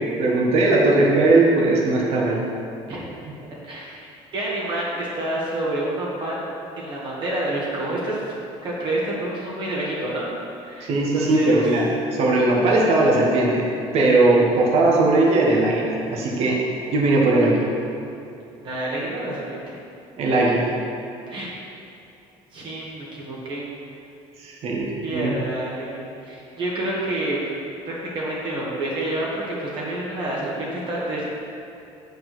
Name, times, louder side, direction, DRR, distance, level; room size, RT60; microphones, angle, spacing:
voice 1, 0.0-2.4 10.8-13.7 13.9-16.6 16.9-17.7 20.2-20.7 24.4-25.3, right 2 dB, 60° right, -3 dB, 1.6 m, -19 dB
voice 2, 2.9-3.3 3.6-4.1 4.3-6.4 6.8-8.3 8.6-10.3 10.6-11.7 18.6-19.8 21.3-21.6 22.5-23.7 25.0-27.4 27.9-31.3, right 1 dB, 40° right, -5 dB, 1.8 m, -28 dB
7.4 x 5.7 x 6.1 m, 2.7 s
cardioid pair, 140°, 12 cm